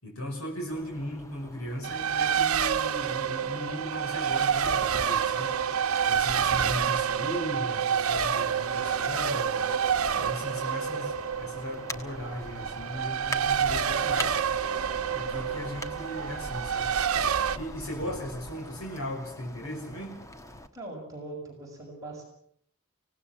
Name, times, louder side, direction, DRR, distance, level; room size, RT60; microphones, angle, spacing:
voice 1, 0.0-5.5 6.1-9.7 10.2-14.4 15.1-16.9 17.5-20.2, equal, 80° left, 1 dB, 5.5 m, -37 dB
sound 1, 0.7-20.7, left 1 dB, 15° left, 1.3 m, -44 dB
Race car auto racing, 1.8-17.6, right 7 dB, 85° right, 1.0 m, -28 dB
voice 2, 17.8-18.2 20.7-22.2, right 2 dB, 15° right, -2 dB, 6.5 m, -41 dB
25.5 x 17.5 x 7.3 m, 0.68 s
head